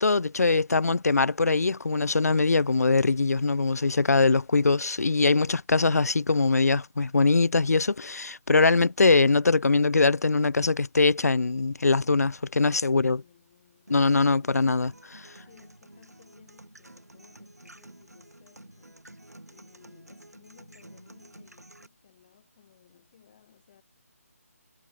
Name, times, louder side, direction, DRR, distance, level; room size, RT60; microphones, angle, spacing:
voice 1, 0.0-13.2 13.9-15.3, left 3 dB, 80° left, 0.5 m, -22 dB
voice 2, 12.9-14.6 15.4-19.0 19.5-23.8, left 9 dB, 30° left, 5.1 m, -59 dB
sound 1, 13.9-21.9, right 1 dB, 90° right, 7.9 m, -51 dB
figure-of-eight pair, 155°, 8 cm